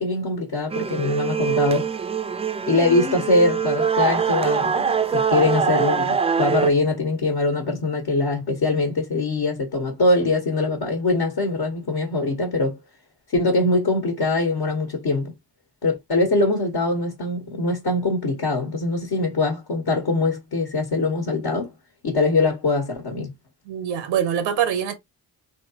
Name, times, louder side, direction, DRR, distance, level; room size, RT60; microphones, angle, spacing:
voice 1, 0.0-1.9 2.7-12.8 13.3-15.3 15.8-21.7 22.0-23.3, left 2 dB, 60° left, 1.3 m, -22 dB
sound 1, 0.7-6.7, right 6 dB, 15° right, 0.3 m, -23 dB
voice 2, 23.7-25.0, right 9 dB, 85° right, 0.7 m, -24 dB
3.2 x 2.8 x 2.8 m
supercardioid pair, 45°, 43 cm